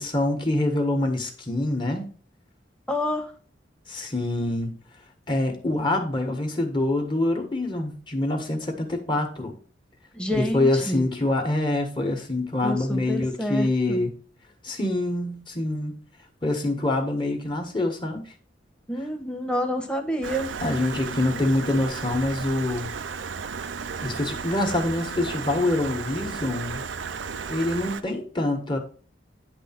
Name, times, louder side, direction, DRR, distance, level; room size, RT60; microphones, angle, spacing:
voice 1, 0.0-2.1 3.9-4.7 5.3-9.5 10.3-14.2 14.6-15.9 16.4-18.3 20.6-22.9 24.0-26.8 27.5-28.8, left 2 dB, 25° left, 1.4 m, -25 dB
voice 2, 2.9-3.3 10.1-11.1 12.6-14.0 18.9-20.5, equal, 5° left, 1.2 m, -28 dB
Stream, 20.2-28.0, right 5 dB, 90° right, 0.6 m, -34 dB
10.0 x 3.4 x 5.8 m
head